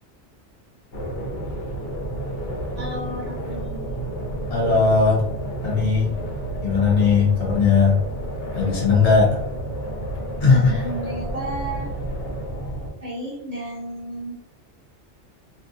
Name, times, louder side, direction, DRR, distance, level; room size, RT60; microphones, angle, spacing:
sound 1, 0.9-12.9, right 1 dB, 85° left, 1.1 m, -30 dB
voice 1, 2.8-3.9 10.5-11.9 13.0-14.4, right 1 dB, 40° right, -4 dB, 0.7 m, -33 dB
voice 2, 4.5-5.3 5.6-6.2 6.6-8.0 8.5-9.4 10.4-10.7, left 4 dB, 40° left, -4 dB, 0.7 m, -18 dB
2.6 x 2.1 x 2.6 m, 0.78 s
omnidirectional pair, 1.2 m